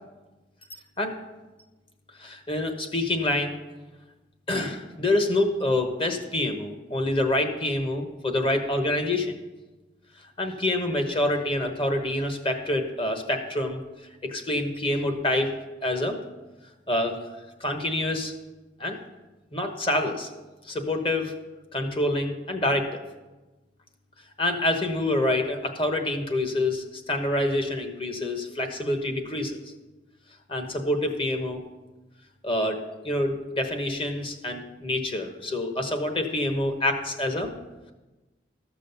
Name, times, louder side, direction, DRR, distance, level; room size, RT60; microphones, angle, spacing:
voice 1, 2.2-3.6 4.5-9.4 10.4-13.8 14.2-16.2 16.9-17.2 17.6-18.3 18.8-19.0 19.5-20.3 20.6-21.3 21.7-23.0 24.4-29.6 30.5-31.6 32.4-32.8 33.0-37.5, left 1 dB, 30° left, 5 dB, 1.1 m, -26 dB
13.5 x 6.2 x 6.9 m, 1.2 s
head